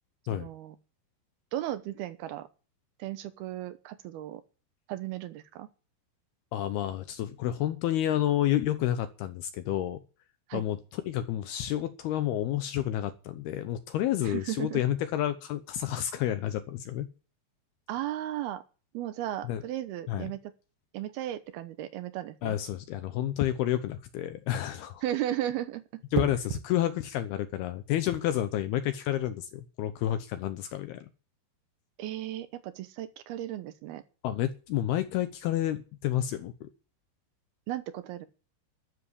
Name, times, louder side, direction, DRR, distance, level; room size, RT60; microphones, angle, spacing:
voice 1, 0.3-0.8 1.5-2.5 3.0-4.4 4.9-5.7 10.5-10.6 14.2-14.8 17.9-18.6 18.9-20.5 20.9-22.6 25.0-26.0 32.0-34.0 37.7-38.3, right 13 dB, 75° right, 13 dB, 2.5 m, -35 dB
voice 2, 6.5-10.0 10.5-17.1 19.5-19.6 20.1-20.3 22.4-25.0 26.1-31.1 34.2-36.7, left 12 dB, 75° left, 10 dB, 2.5 m, -30 dB
sound 1, 23.3-23.7 26.1-26.7 28.6-28.9, right 7 dB, 60° right, 2.8 m, -33 dB
12.5 x 7.4 x 9.9 m, 0.35 s
omnidirectional pair, 5.2 m